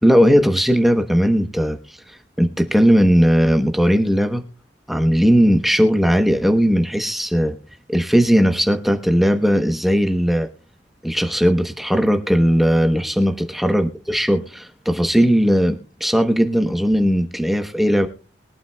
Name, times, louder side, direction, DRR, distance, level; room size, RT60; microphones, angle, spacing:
voice 1, 0.0-4.4 4.9-7.6 7.9-10.5 11.0-18.1, equal, ahead, 6 dB, 0.9 m, -17 dB
22.5 x 8.8 x 2.3 m, 0.36 s
head